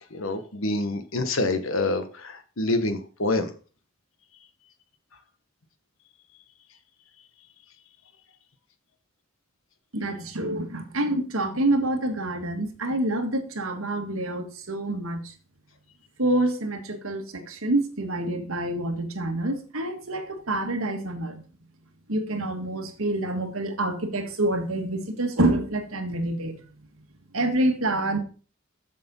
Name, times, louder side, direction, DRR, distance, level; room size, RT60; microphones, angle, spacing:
voice 1, 0.1-3.5, left 2 dB, 75° left, 9 dB, 1.3 m, -27 dB
voice 2, 9.9-15.3 16.2-21.4 22.1-26.6 27.3-28.2, right 1 dB, 85° right, 5 dB, 1.7 m, -27 dB
7.5 x 6.9 x 5.5 m, 0.38 s
head